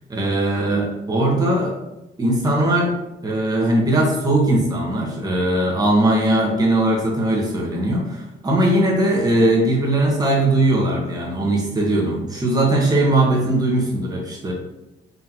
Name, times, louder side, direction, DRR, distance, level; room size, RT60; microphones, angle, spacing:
voice 1, 0.1-1.7 2.2-2.9 3.2-14.5, right 1 dB, 20° right, -3 dB, 1.2 m, -19 dB
4.0 x 3.1 x 2.9 m, 0.93 s
cardioid pair, 90°, 20 cm